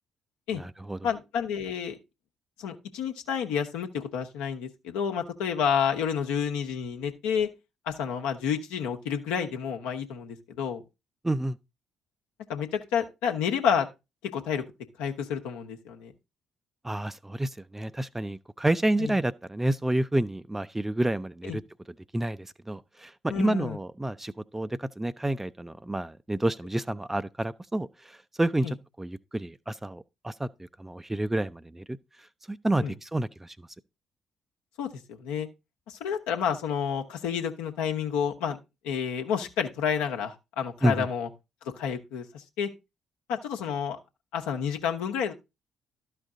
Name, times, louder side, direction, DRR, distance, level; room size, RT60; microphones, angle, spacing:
voice 1, 0.5-1.0 11.2-11.6 16.8-21.6 22.1-32.0 32.5-33.7 40.8-41.1, right 1 dB, 15° right, 0.5 m, -29 dB
voice 2, 1.0-2.0 2.6-7.5 7.9-10.8 12.5-13.9 14.3-14.6 15.0-16.1 19.0-19.1 21.4-21.6 23.3-23.8 28.6-28.7 32.8-32.9 34.8-35.5 35.9-38.6 38.8-41.3 41.8-42.7 43.3-44.0 44.3-45.3, left 7 dB, 70° left, 1.1 m, -30 dB
12.5 x 5.1 x 3.8 m
figure-of-eight pair, 45°, 2 cm